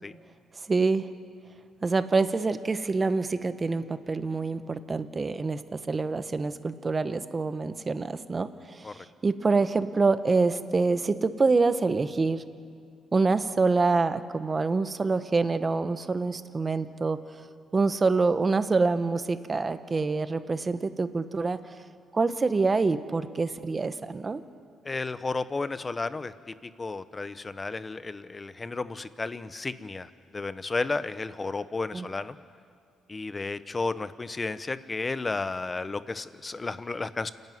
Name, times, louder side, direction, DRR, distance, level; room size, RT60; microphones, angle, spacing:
voice 1, 0.7-1.1 1.8-12.4 13.1-17.2 17.7-21.6 22.1-24.4 31.9-32.1, right 3 dB, 30° right, 11 dB, 1.1 m, -26 dB
voice 2, 24.8-32.4 33.1-37.3, left 3 dB, 25° left, 14 dB, 0.8 m, -33 dB
28.5 x 11.0 x 9.4 m, 2.3 s
cardioid pair, 90°, 0 cm